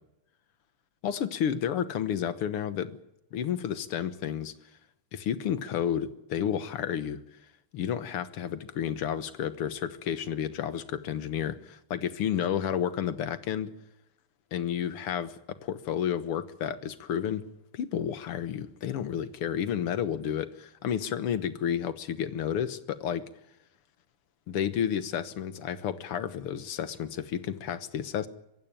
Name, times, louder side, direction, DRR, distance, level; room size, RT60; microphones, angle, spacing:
voice 1, 1.0-3.0 3.3-4.5 5.1-7.2 7.7-13.7 14.5-17.4 17.7-23.3 24.5-28.3, left 9 dB, 80° left, 13 dB, 2.1 m, -31 dB
24.0 x 16.0 x 8.9 m, 0.86 s
omnidirectional pair, 2.4 m